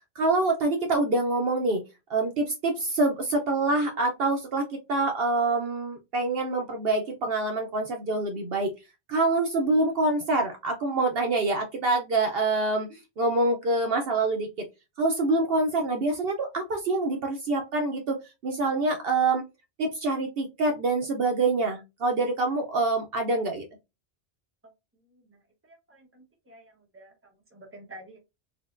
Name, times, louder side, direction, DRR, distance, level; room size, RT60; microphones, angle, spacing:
voice 1, 0.2-1.8 2.1-8.7 9.1-14.5 15.0-19.4 19.8-23.6, right 2 dB, 65° right, 4 dB, 0.8 m, -26 dB
voice 2, 25.9-27.1 27.5-28.2, right 1 dB, 15° right, 1 dB, 0.8 m, -48 dB
4.3 x 2.1 x 2.4 m, 0.24 s
omnidirectional pair, 1.2 m